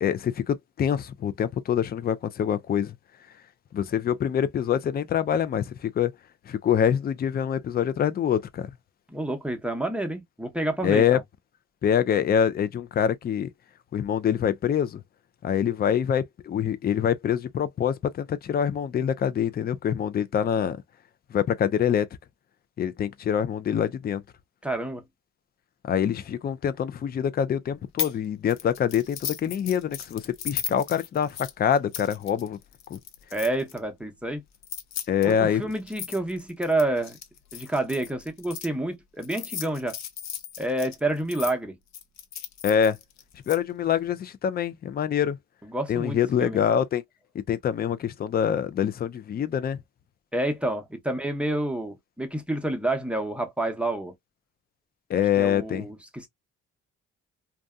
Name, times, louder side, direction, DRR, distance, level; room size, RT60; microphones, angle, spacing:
voice 1, 0.0-2.9 3.7-6.1 6.5-8.7 10.8-11.2 11.8-13.5 13.9-15.0 15.4-20.8 21.3-22.1 22.8-24.2 25.9-32.6 32.9-33.0 35.1-35.6 42.6-43.0 43.5-45.4 45.9-47.0 47.3-49.8 55.1-55.9, left 8 dB, 35° left, 0.4 m, -25 dB
voice 2, 9.1-11.2 24.6-25.0 33.3-34.4 35.2-37.2 37.5-40.0 40.6-41.8 45.6-46.6 50.3-54.1 55.4-56.3, right 1 dB, 5° right, 0.7 m, -29 dB
sound 1, 28.0-28.2 28.5-33.8 34.5-38.7 39.2-41.5 41.9-43.6, left 9 dB, 65° left, 0.7 m, -36 dB
2.6 x 2.3 x 2.2 m
cardioid pair, 90°, 30 cm